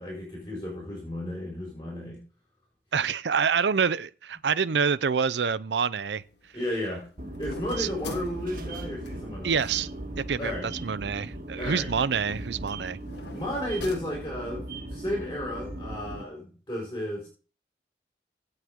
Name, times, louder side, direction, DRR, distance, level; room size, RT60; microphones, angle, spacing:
voice 1, 0.0-2.2 6.5-7.1 7.4-9.6 10.4-10.7 11.6-11.9 13.3-17.3, left 1 dB, 20° left, 4.6 m, -33 dB
voice 2, 2.9-6.2 7.8-7.9 9.4-9.9 10.2-10.5 10.8-13.0, right 6 dB, 80° right, 0.6 m, -26 dB
sound 1, 5.9-14.8, left 3 dB, 80° left, 1.6 m, -47 dB
sound 2, 7.2-16.2, right 2 dB, 50° right, 1.7 m, -38 dB
17.0 x 6.5 x 3.6 m
head